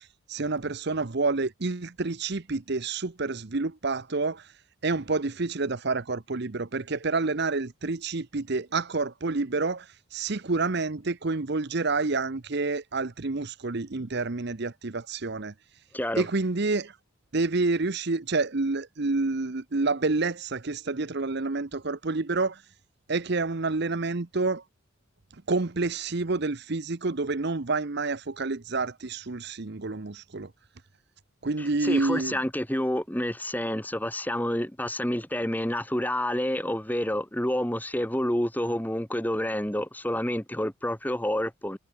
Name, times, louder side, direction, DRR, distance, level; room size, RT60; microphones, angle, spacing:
voice 1, 0.0-4.5 4.8-15.5 16.2-16.9 17.3-22.6 23.1-24.6 25.5-30.5 31.4-32.3, right 3 dB, 50° right, 0.9 m, -28 dB
voice 2, 15.9-16.3 31.6-41.8, left 1 dB, 10° left, 2.3 m, -29 dB
head